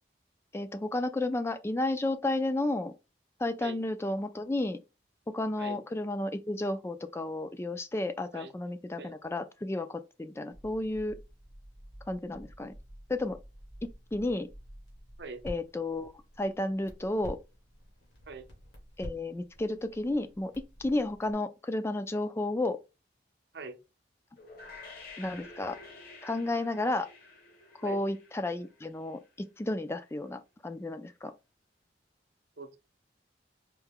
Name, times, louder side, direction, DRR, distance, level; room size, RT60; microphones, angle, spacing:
voice 1, 0.5-2.9 3.4-4.8 5.3-11.2 12.1-12.7 13.1-13.4 14.1-14.5 15.4-16.1 16.4-17.4 19.0-22.8 25.2-25.8 26.2-27.1 27.8-31.3, left 2 dB, 15° left, 0.3 m, -32 dB
voice 2, 3.6-3.8 5.6-5.8 8.3-8.5 9.0-9.1 15.2-15.4 18.3-18.4 23.5-23.8 27.8-28.0 32.6-32.8, right 4 dB, 65° right, 0.7 m, -42 dB
Crackle, 10.5-21.3, equal, 85° left, 1.9 m, -49 dB
sound 1, 24.4-29.3, left 3 dB, 50° left, 1.0 m, -50 dB
4.5 x 2.2 x 3.5 m
head